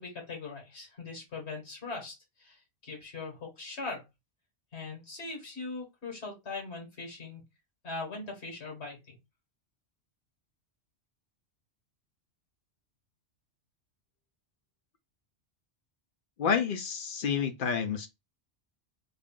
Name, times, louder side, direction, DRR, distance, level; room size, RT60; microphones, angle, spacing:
voice 1, 0.0-4.1 4.7-7.4 7.8-9.2, left 3 dB, 85° left, 2.0 m, -40 dB
voice 2, 16.4-18.1, left 6 dB, 60° left, 0.7 m, -29 dB
3.4 x 2.4 x 3.6 m
omnidirectional pair, 1.1 m